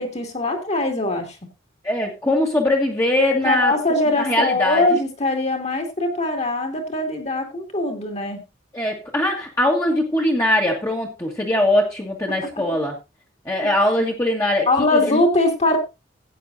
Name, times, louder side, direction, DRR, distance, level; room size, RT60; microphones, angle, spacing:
voice 1, 0.0-1.4 3.3-8.4 14.7-15.8, left 2 dB, 35° left, 4 dB, 2.3 m, -22 dB
voice 2, 1.8-3.7 4.2-4.8 8.7-12.9 13.4-14.7 15.0-15.2, left 1 dB, 15° left, -2 dB, 1.6 m, -21 dB
16.0 x 8.9 x 2.7 m, 0.25 s
head